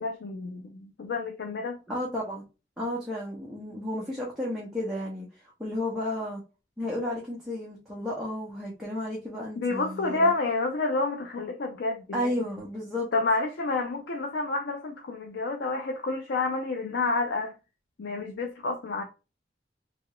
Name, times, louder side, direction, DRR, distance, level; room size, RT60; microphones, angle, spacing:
voice 1, 0.0-1.8 9.6-12.5 13.1-17.5 18.0-19.0, left 3 dB, 80° left, 0.5 m, -29 dB
voice 2, 1.9-2.5 2.8-6.4 6.8-10.3 12.1-13.1, left 1 dB, ahead, 0.7 m, -33 dB
2.8 x 2.3 x 2.9 m
head